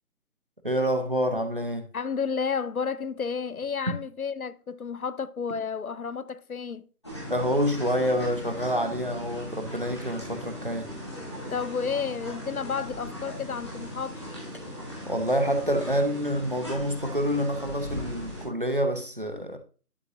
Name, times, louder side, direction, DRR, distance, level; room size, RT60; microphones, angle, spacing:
voice 1, 0.6-1.9 7.3-10.9 15.1-19.6, equal, 35° right, 0.8 m, -27 dB
voice 2, 1.9-6.9 11.5-14.2, left 6 dB, 65° left, 0.6 m, -31 dB
sound 1, 7.0-18.5, equal, 20° left, 1.5 m, -38 dB
11.0 x 5.0 x 2.9 m
figure-of-eight pair, 175°, 46 cm